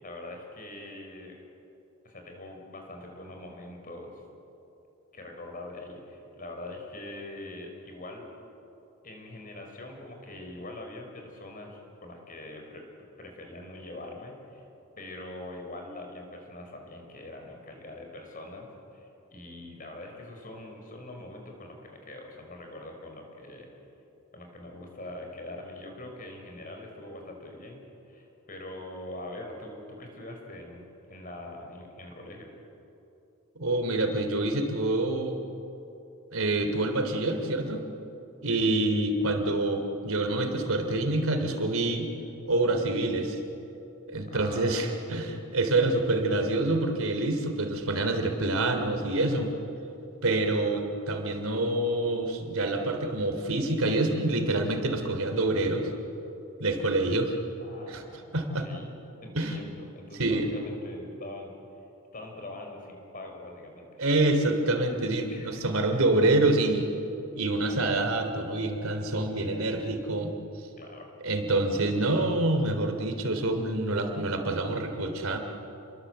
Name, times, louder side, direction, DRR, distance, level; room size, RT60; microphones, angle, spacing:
voice 1, 0.0-1.4 2.0-4.2 5.1-8.3 9.0-12.8 13.2-14.6 15.0-23.7 24.3-32.5 38.5-38.6 44.3-45.3 50.2-50.7 57.6-58.9 59.2-61.6 62.1-64.0 65.3-65.6 70.8-71.1, left 1 dB, 40° left, 3 dB, 5.1 m, -43 dB
voice 2, 33.5-35.4 36.3-37.8 38.4-42.1 42.5-43.4 44.1-49.5 50.2-55.9 56.6-57.3 57.9-58.0 58.3-58.7 59.3-59.6 60.2-60.5 64.0-66.8 67.3-70.3 71.2-75.4, right 2 dB, 85° right, 5 dB, 3.1 m, -26 dB
30.0 x 22.5 x 8.0 m, 2.9 s
head